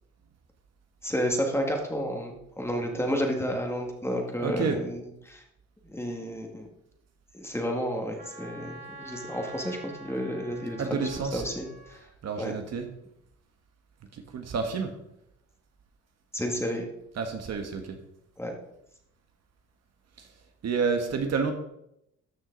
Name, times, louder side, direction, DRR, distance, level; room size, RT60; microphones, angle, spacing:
voice 1, 1.0-5.4 5.9-6.7 7.3-12.0 12.4-12.5 16.3-16.9 18.4-18.5, equal, 10° left, 2 dB, 2.1 m, -31 dB
voice 2, 4.4-4.8 10.8-11.4 12.2-12.9 14.3-14.9 17.2-18.0 20.6-21.5, right 5 dB, 60° right, 5 dB, 1.6 m, -29 dB
Wind instrument woodwind instrument, 8.2-12.0, right 2 dB, 30° right, 2.9 m, -46 dB
13.5 x 6.2 x 4.1 m, 0.80 s
cardioid pair, 90°, 30 cm